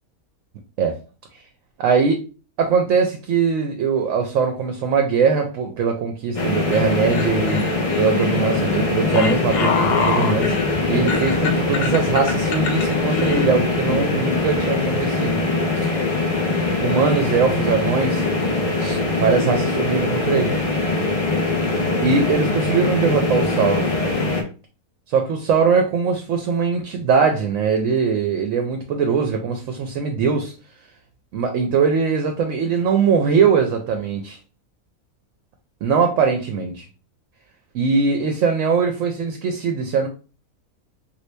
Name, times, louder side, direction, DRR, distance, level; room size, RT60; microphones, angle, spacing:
voice 1, 1.8-2.2 2.6-7.6 8.0-15.4 15.8-15.9 16.8-18.2 18.8-20.5 22.0-23.9 25.1-30.5 31.3-34.4 35.8-36.9 37.7-40.1, right 5 dB, 70° right, 4 dB, 0.9 m, -21 dB
sound 1, 6.3-24.4, left 3 dB, 50° left, 0.4 m, -22 dB
sound 2, 6.7-13.5, left 5 dB, 70° left, 1.0 m, -26 dB
3.0 x 2.6 x 3.2 m, 0.35 s
omnidirectional pair, 1.6 m